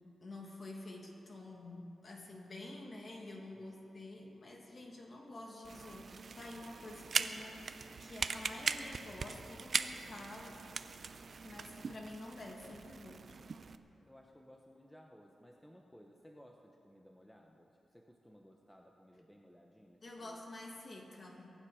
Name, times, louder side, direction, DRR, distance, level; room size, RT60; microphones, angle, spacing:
voice 1, 0.2-10.6 11.4-13.4 20.0-21.5, left 2 dB, 45° left, 0 dB, 2.2 m, -49 dB
sound 1, 5.6-13.8, right 5 dB, 50° right, 0.5 m, -40 dB
voice 2, 14.0-20.4, equal, 5° left, 1 dB, 0.9 m, -59 dB
22.5 x 9.7 x 4.9 m, 2.8 s
wide cardioid pair, 110°, 0 cm